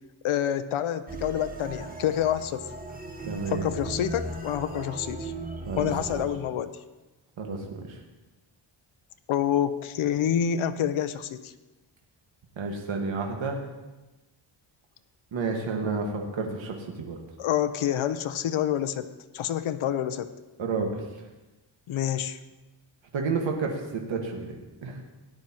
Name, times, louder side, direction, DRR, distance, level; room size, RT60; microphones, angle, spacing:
voice 1, 0.2-2.6 3.5-5.3 5.8-6.8 9.3-11.5 17.4-19.1 19.3-20.3 21.9-22.4, left 10 dB, 80° left, 11 dB, 0.8 m, -27 dB
sound 1, 1.1-6.2, right 2 dB, 20° right, 1.4 m, -37 dB
voice 2, 3.3-3.7 5.7-6.2 7.4-8.0 12.6-13.6 15.3-17.2 20.6-21.0 23.1-24.5 24.8-25.0, right 4 dB, 70° right, 1 dB, 1.6 m, -30 dB
17.5 x 10.5 x 2.9 m, 1.1 s
cardioid pair, 105°, 49 cm